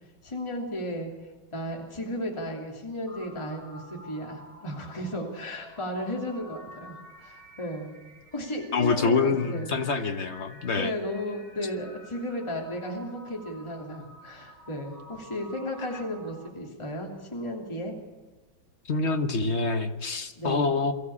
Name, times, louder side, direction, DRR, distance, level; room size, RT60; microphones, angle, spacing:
voice 1, 0.2-1.1 1.5-8.0 8.3-10.1 10.7-18.0 20.4-20.6, equal, 15° left, 0 dB, 2.8 m, -34 dB
sound 1, 3.1-16.5, equal, 15° right, 6.2 m, -50 dB
voice 2, 8.7-10.9 18.9-20.9, left 4 dB, 40° left, 7 dB, 1.2 m, -26 dB
23.0 x 14.5 x 8.6 m, 1.2 s
omnidirectional pair, 2.2 m